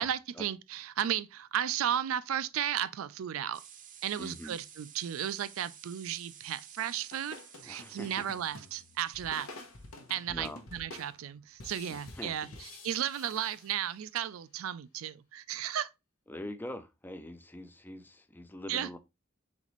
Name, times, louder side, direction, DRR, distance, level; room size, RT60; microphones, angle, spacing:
voice 1, 0.0-3.6 4.0-9.5 10.1-12.5 12.8-15.9 18.7-18.9, right 10 dB, 80° right, 0.4 m, -34 dB
sound 1, 3.5-10.2, right 8 dB, 40° right, 0.6 m, -54 dB
voice 2, 4.2-4.6 7.6-8.3 10.3-10.6 11.9-12.6 16.3-19.0, left 1 dB, 10° left, 0.4 m, -43 dB
sound 2, 6.8-14.2, left 2 dB, 90° left, 1.0 m, -50 dB
4.1 x 3.9 x 3.0 m
head